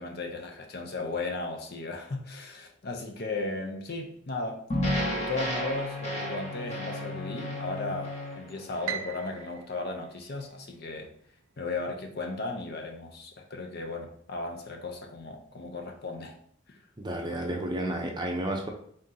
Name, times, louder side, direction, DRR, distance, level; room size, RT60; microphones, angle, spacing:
voice 1, 0.0-4.6 5.1-11.1 11.6-16.4 16.7-16.8, left 3 dB, 50° left, 3 dB, 0.7 m, -36 dB
sound 1, 4.7-9.0, equal, 35° left, 1.0 m, -33 dB
sound 2, 5.4-8.9, left 3 dB, 90° left, 0.4 m, -40 dB
Piano, 8.9-11.1, right 9 dB, 70° right, 0.4 m, -39 dB
voice 2, 17.0-18.7, right 1 dB, 20° right, 1 dB, 0.6 m, -31 dB
3.7 x 2.9 x 3.8 m, 0.63 s
head